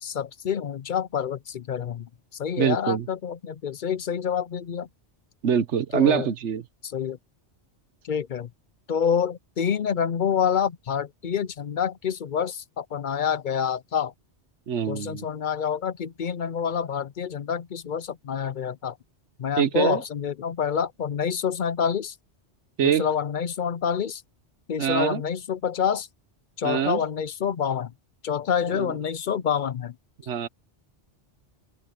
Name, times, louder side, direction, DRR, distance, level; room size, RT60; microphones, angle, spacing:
voice 1, 0.0-4.9 5.9-6.3 6.8-7.2 8.0-8.5 8.9-14.1 14.9-19.0 19.4-22.1 22.8-24.2 24.7-26.1 26.6-27.9 28.2-29.9, left 7 dB, 55° left, 0.6 m, -27 dB
voice 2, 2.6-3.1 5.4-6.6 14.7-15.2 19.6-20.0 22.8-23.0 24.8-25.2 26.6-27.0 28.7-28.9 30.3-30.5, right 8 dB, 80° right, 1.3 m, -24 dB
omnidirectional pair, 1.2 m